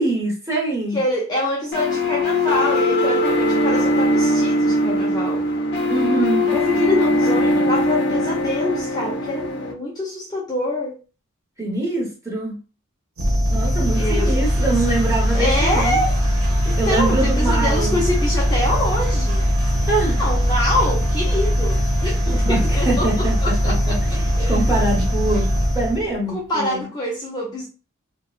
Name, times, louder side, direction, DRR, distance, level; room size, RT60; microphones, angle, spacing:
voice 1, 0.0-1.0 5.9-6.6 11.6-12.6 13.5-16.0 16.8-18.0 19.9-20.2 22.3-26.8, right 2 dB, 15° right, -3 dB, 0.9 m, -24 dB
voice 2, 0.9-5.5 6.5-11.0 14.0-14.8 15.3-16.2 16.7-19.4 20.2-24.6 26.3-27.7, left 1 dB, 20° left, -4 dB, 0.4 m, -25 dB
sound 1, 1.7-9.7, left 1 dB, 55° left, 0.7 m, -20 dB
sound 2, 13.2-26.2, equal, 85° right, 0.9 m, -20 dB
2.7 x 2.1 x 2.4 m, 0.33 s
head